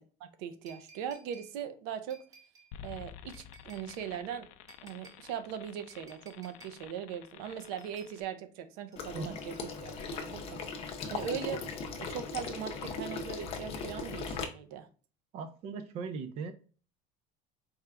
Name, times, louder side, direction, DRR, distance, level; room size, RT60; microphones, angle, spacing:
voice 1, 0.2-2.2 2.8-4.5 4.8-9.5 9.8-11.6 12.0-14.9, right 8 dB, 90° right, 9 dB, 0.7 m, -40 dB
sound 1, 0.7-1.5 2.1-2.7 3.3-4.1 4.7-5.2 5.9-6.8 7.6-8.1 8.9-10.1 11.2-11.3, right 4 dB, 20° right, 0.8 m, -58 dB
sound 2, 2.7-8.2, left 10 dB, 75° left, 0.4 m, -51 dB
Water / Liquid, 9.0-14.4, left 4 dB, 30° left, 0.6 m, -38 dB
voice 2, 15.3-16.5, right 5 dB, 35° right, 9 dB, 0.3 m, -39 dB
4.4 x 2.4 x 3.2 m, 0.39 s
cardioid pair, 175°, 19 cm